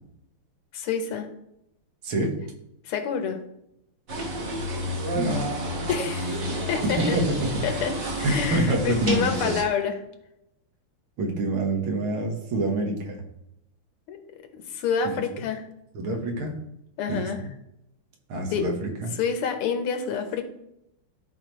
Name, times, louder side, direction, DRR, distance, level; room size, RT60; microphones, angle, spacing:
voice 1, 0.7-1.3 2.9-3.4 5.9-7.2 7.6-10.0 14.1-14.4 14.7-15.6 17.0-17.4 18.5-18.7 19.2-20.4, left 7 dB, 85° left, 6 dB, 1.8 m, -28 dB
sound 1, 4.1-9.6, equal, 55° right, 1.9 m, -30 dB
voice 2, 5.1-5.5 7.0-7.9 8.2-9.5 11.2-13.2 15.9-16.6 17.1-17.5 18.3-19.2, right 2 dB, 75° right, 2 dB, 2.2 m, -27 dB
13.0 x 4.5 x 3.1 m, 0.81 s
omnidirectional pair, 2.4 m